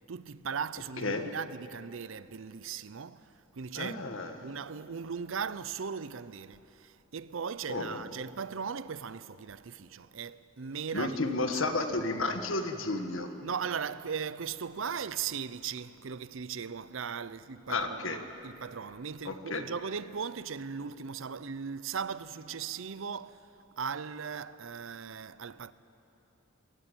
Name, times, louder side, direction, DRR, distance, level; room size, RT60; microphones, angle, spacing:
voice 1, 0.1-4.1 4.4-11.6 13.4-23.4 23.8-25.7, right 6 dB, 80° right, 0.6 m, -38 dB
voice 2, 3.7-4.4 7.7-8.0 10.9-13.3 17.7-18.2 19.2-19.6, left 2 dB, 80° left, 1.6 m, -32 dB
22.0 x 17.5 x 9.1 m
head